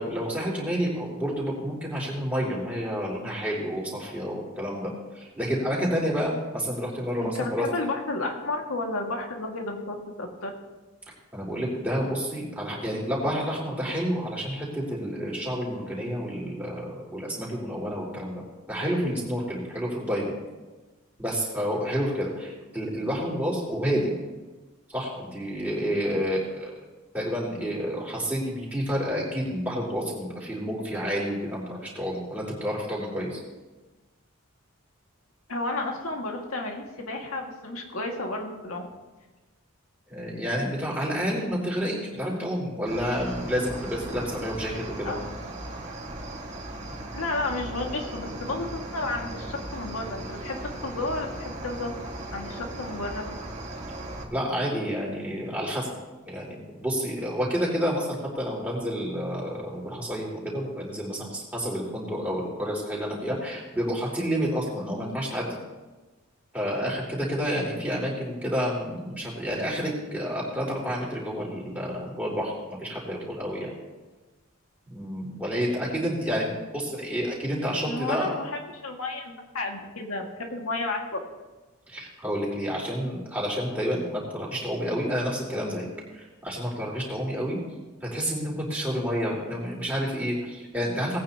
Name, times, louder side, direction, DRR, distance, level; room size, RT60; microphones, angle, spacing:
voice 1, 0.0-7.7 11.3-18.4 18.7-20.4 21.2-24.1 24.9-26.7 27.1-33.4 40.1-45.1 54.3-55.9 56.2-65.6 66.5-72.5 72.8-73.7 74.9-78.3 81.9-85.9 86.1-87.6 88.0-91.2, equal, 10° right, -6 dB, 3.7 m, -29 dB
voice 2, 7.2-10.6 23.9-24.1 35.5-38.8 45.0-45.2 47.1-51.9 52.3-53.2 77.9-81.2, left 2 dB, 90° left, 1 dB, 2.0 m, -32 dB
Cricket, 42.9-54.2, right 1 dB, 35° right, 1.8 m, -37 dB
19.5 x 9.2 x 2.9 m, 1.2 s
head